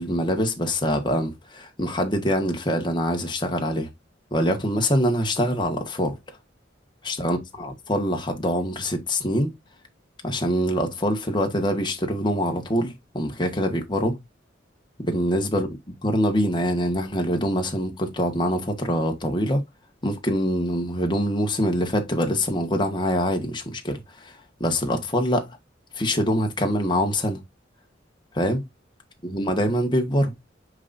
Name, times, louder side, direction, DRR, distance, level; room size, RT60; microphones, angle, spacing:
voice 1, 0.0-3.9 4.3-6.2 7.0-9.5 10.2-14.2 15.0-15.7 16.0-19.6 20.0-24.3 24.6-25.6 25.9-27.4 28.3-28.6 29.2-30.3, equal, 25° left, 1.5 m, -24 dB
9.4 x 4.1 x 2.6 m
head